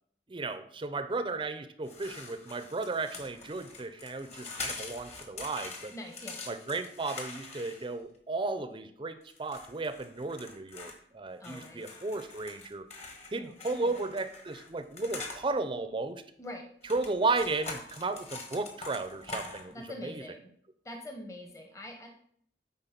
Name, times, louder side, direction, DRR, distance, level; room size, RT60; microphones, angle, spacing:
voice 1, 0.3-5.9 6.5-12.9 13.3-16.2 16.9-19.8 20.0-20.1, right 3 dB, 30° right, 11 dB, 0.5 m, -34 dB
sound 1, 1.8-8.2 9.3-11.0 11.4-15.4 16.8-19.7, left 3 dB, 40° left, 1.5 m, -44 dB
voice 2, 5.9-6.5 11.4-11.9 13.3-14.0 16.4-16.7 19.7-20.5 20.8-22.1, left 1 dB, 20° left, 3 dB, 0.9 m, -44 dB
9.1 x 4.2 x 5.8 m, 0.64 s
head